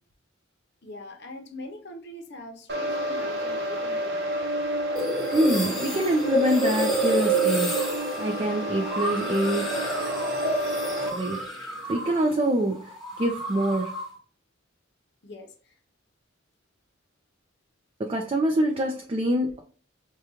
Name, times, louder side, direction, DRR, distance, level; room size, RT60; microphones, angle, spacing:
voice 1, 0.8-4.4 15.2-15.8, left 2 dB, 55° left, 0.7 m, -42 dB
sound 1, 2.7-11.1, equal, 55° right, 0.8 m, -30 dB
sound 2, 4.9-12.4 12.6-14.1, right 2 dB, ahead, 1.1 m, -29 dB
voice 2, 5.3-7.8 8.2-9.8 11.1-11.4 11.9-14.0 18.0-19.6, right 1 dB, 30° right, 0.4 m, -25 dB
4.9 x 2.3 x 2.9 m
head